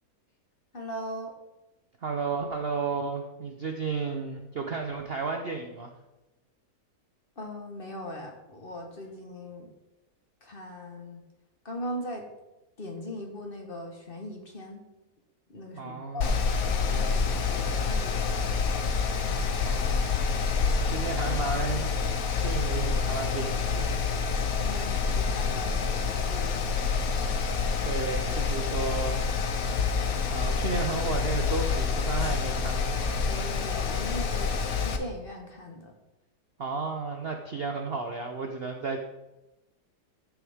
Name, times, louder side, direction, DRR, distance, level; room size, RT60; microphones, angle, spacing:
voice 1, 0.7-1.3 7.4-9.7 10.4-11.2 11.6-12.2 12.8-14.8 15.5-16.4 16.9-18.8 19.3-19.6 24.6-26.6 33.3-35.9, left 1 dB, 35° left, 2 dB, 1.4 m, -39 dB
voice 2, 2.0-5.9 15.7-16.3 19.6-20.2 20.7-21.9 22.3-23.9 27.8-29.2 30.3-33.1 36.6-39.0, right 4 dB, 50° right, 3 dB, 0.7 m, -33 dB
Mechanical fan, 16.2-35.0, left 5 dB, 60° left, 1.3 m, -27 dB
13.5 x 7.0 x 3.6 m, 1.0 s
omnidirectional pair, 1.8 m